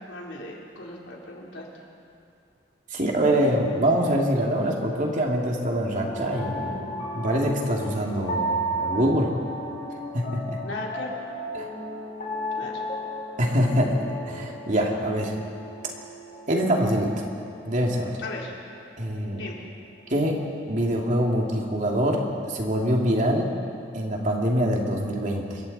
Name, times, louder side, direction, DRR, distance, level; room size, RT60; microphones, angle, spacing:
voice 1, 0.0-1.7 10.6-11.1 12.6-12.8 18.2-18.8 19.3-19.7, left 2 dB, 90° left, -3 dB, 3.9 m, -37 dB
voice 2, 2.9-9.3 10.1-10.6 11.5-11.7 13.4-15.3 16.5-17.2 17.6-18.1 19.0-19.4 20.1-20.4 20.7-23.5 23.9-25.6, equal, 45° right, -1 dB, 2.8 m, -24 dB
sound 1, 6.0-20.3, right 1 dB, 45° left, 5.0 m, -35 dB
27.5 x 23.5 x 4.3 m, 2.5 s
head